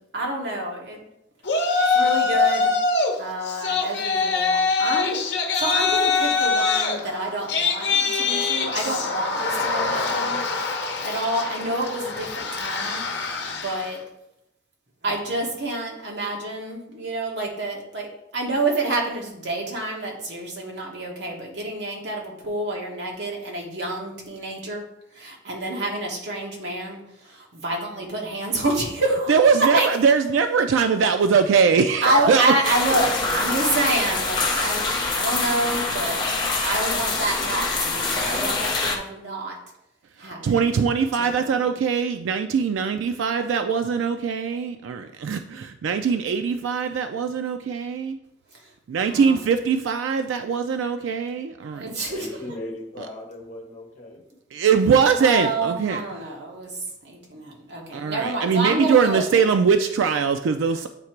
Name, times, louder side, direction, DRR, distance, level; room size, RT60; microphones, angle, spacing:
voice 1, 0.1-1.0 1.8-2.7 3.2-10.4 11.0-13.0 13.6-14.0 15.0-24.8 25.1-29.9 32.0-36.3 36.6-39.6 40.2-40.7 41.2-41.5 49.0-49.4 51.7-52.2 55.1-56.8 57.0-59.4, right 2 dB, 65° right, -1 dB, 1.4 m, -28 dB
Yell, 1.5-3.1 3.5-13.9, left 4 dB, 65° left, 0.9 m, -24 dB
voice 2, 29.3-32.5 40.4-48.2 48.9-51.9 54.5-56.3 57.9-60.9, right 6 dB, 80° right, 7 dB, 0.3 m, -21 dB
sound 1, 32.6-39.0, left 3 dB, 20° left, 0.7 m, -25 dB
voice 3, 52.1-54.2, left 1 dB, 40° left, 1 dB, 1.2 m, -37 dB
8.4 x 2.8 x 4.5 m, 0.83 s
head